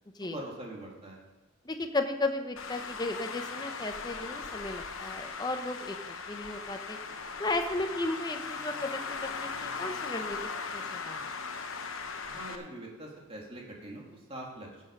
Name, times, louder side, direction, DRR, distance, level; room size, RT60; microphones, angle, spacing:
voice 1, 0.2-1.2 12.3-14.7, right 1 dB, 25° right, -2 dB, 2.4 m, -43 dB
voice 2, 1.6-7.0 7.4-11.2, left 2 dB, 20° left, 6 dB, 0.8 m, -35 dB
Traffic noise roadway noise, 2.6-12.6, left 5 dB, 70° left, 0.9 m, -38 dB
16.0 x 6.5 x 5.3 m, 1.2 s
head